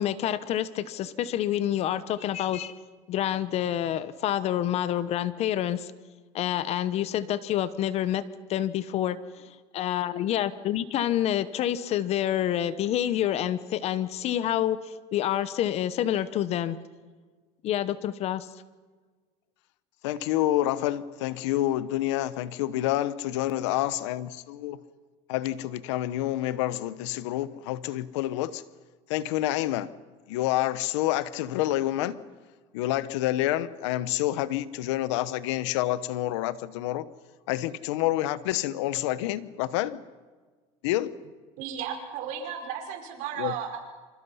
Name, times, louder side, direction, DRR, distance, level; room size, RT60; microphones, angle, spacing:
voice 1, 0.0-2.7 3.1-5.9 6.3-8.2 8.5-9.2 9.7-14.8 15.1-16.8 17.6-18.5, left 11 dB, 45° left, 15 dB, 1.0 m, -27 dB
voice 2, 20.0-24.8 25.3-28.6 29.1-29.9 30.3-32.2 32.7-37.1 37.5-40.0 40.8-41.1 43.4-43.5, left 14 dB, 85° left, 16 dB, 1.0 m, -28 dB
voice 3, 41.6-43.8, right 8 dB, 60° right, 2 dB, 5.4 m, -34 dB
26.5 x 26.0 x 5.7 m, 1.4 s
supercardioid pair, 130°, 15 cm